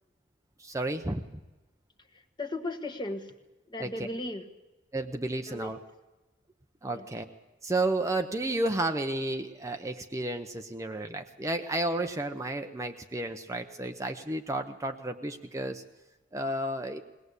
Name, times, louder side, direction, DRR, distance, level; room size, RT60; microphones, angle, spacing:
voice 1, 0.6-1.4 3.8-4.1 4.9-5.8 6.8-7.2 7.6-15.8 16.3-17.0, right 2 dB, 15° right, 5 dB, 0.8 m, -32 dB
voice 2, 2.4-3.3 3.7-4.4 5.5-5.7 6.9-7.0, left 2 dB, 25° left, 5 dB, 1.5 m, -36 dB
21.5 x 18.5 x 8.2 m, 1.1 s
head